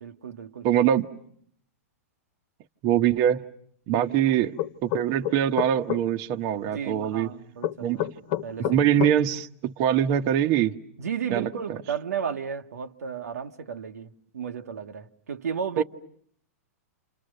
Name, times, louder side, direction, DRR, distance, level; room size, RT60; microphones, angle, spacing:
voice 1, 0.0-0.7 3.9-4.2 6.6-8.1 8.4-8.9 11.0-15.8, right 7 dB, 85° right, 1.3 m, -34 dB
voice 2, 0.6-1.1 2.8-3.4 3.9-4.5 4.8-7.3 7.8-8.1 8.6-10.8 11.3-11.8 15.8-15.9, right 10 dB, 40° right, 1.0 m, -23 dB
sound 1, 4.6-6.0 7.6-9.2, left 13 dB, 45° left, 1.2 m, -28 dB
29.5 x 28.0 x 6.6 m
hypercardioid pair, 135°, 8 cm